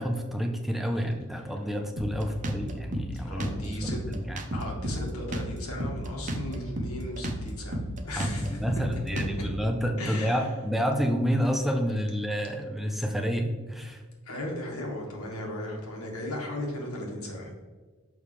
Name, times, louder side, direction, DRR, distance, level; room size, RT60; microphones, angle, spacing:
voice 1, 0.0-4.4 8.2-14.0, equal, ahead, 3 dB, 0.5 m, -29 dB
Drum kit, 2.0-9.6, equal, 35° right, 0.7 m, -33 dB
voice 2, 3.1-4.0 4.5-8.6 9.1-9.4 10.0-10.4 14.2-17.5, left 1 dB, 85° left, 0 dB, 1.7 m, -36 dB
6.5 x 5.4 x 3.3 m, 1.3 s
head